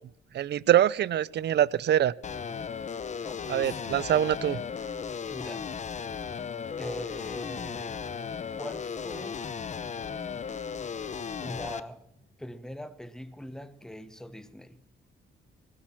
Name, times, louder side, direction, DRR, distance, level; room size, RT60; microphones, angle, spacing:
voice 1, 0.3-2.1 3.5-4.6, right 11 dB, 60° right, 0.6 m, -24 dB
sound 1, 2.2-11.8, left 6 dB, 35° left, 0.9 m, -36 dB
voice 2, 3.2-3.8 4.5-4.6 5.3-5.8 6.8-8.0 8.5-9.4 11.4-12.0 12.4-14.8, left 1 dB, 5° left, 1.2 m, -41 dB
16.0 x 15.0 x 5.8 m
cardioid pair, 90°, 20 cm